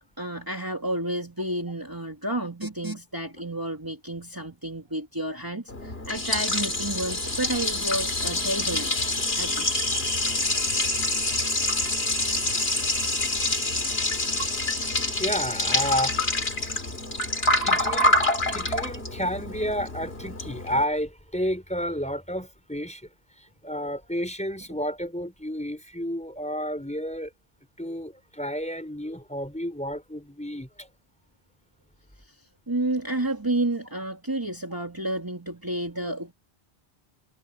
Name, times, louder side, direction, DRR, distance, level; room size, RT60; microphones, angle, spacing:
voice 1, 0.2-8.9 9.3-9.7 32.2-36.3, right 1 dB, 20° right, 2.4 m, -31 dB
Liquid, 5.7-20.8, left 2 dB, 70° left, 3.5 m, -26 dB
voice 2, 15.2-16.2 17.6-18.2 18.5-23.0 23.6-27.3 27.8-30.9 36.0-36.1, equal, 5° left, 4.6 m, -31 dB
omnidirectional pair, 1.1 m